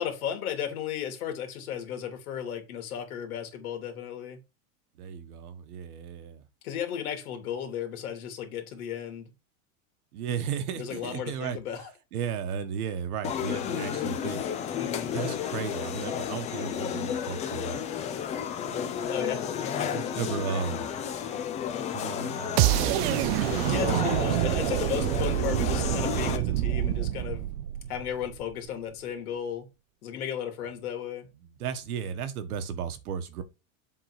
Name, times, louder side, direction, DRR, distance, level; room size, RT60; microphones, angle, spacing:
voice 1, 0.0-4.4 6.6-9.3 10.8-11.9 14.8-15.2 19.1-19.5 23.7-27.5 27.9-29.7 30.0-31.3, left 9 dB, 80° left, 2.6 m, -34 dB
voice 2, 5.0-6.4 10.1-11.6 12.1-14.5 15.1-17.8 18.7-19.0 19.9-20.9 21.9-23.3 23.5-24.5 25.4-25.9 31.4-33.4, right 7 dB, 85° right, 1.5 m, -35 dB
sound 1, 13.2-26.4, left 8 dB, 15° left, 0.4 m, -32 dB
sound 2, 22.6-28.5, right 15 dB, 45° right, 0.4 m, -27 dB
7.5 x 3.9 x 4.8 m
supercardioid pair, 155°, 43 cm